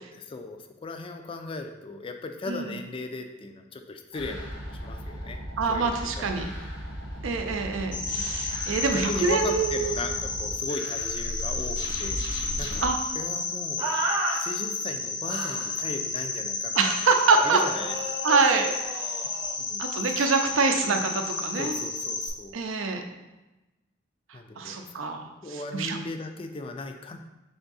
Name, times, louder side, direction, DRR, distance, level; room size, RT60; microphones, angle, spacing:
voice 1, 0.0-5.4 5.7-6.5 8.1-8.3 8.9-12.9 13.1-13.9 14.3-17.0 17.4-18.2 19.2-19.8 21.6-22.6 24.3-25.0 25.4-27.2, left 2 dB, 25° left, 6 dB, 0.3 m, -37 dB
sound 1, 4.1-12.9, equal, 85° left, 1.1 m, -36 dB
voice 2, 5.6-6.5 7.2-10.0 12.8-13.0 16.7-17.6 18.2-19.1 19.8-21.8 22.5-23.0 24.6-26.0, right 4 dB, 85° right, 5 dB, 0.5 m, -25 dB
Cricket, 7.9-22.3, left 4 dB, 65° left, 0.8 m, -32 dB
sound 2, 13.8-14.4 15.2-15.7 17.2-19.6, right 1 dB, 20° right, 0.6 m, -32 dB
3.5 x 3.5 x 4.0 m, 1.0 s
head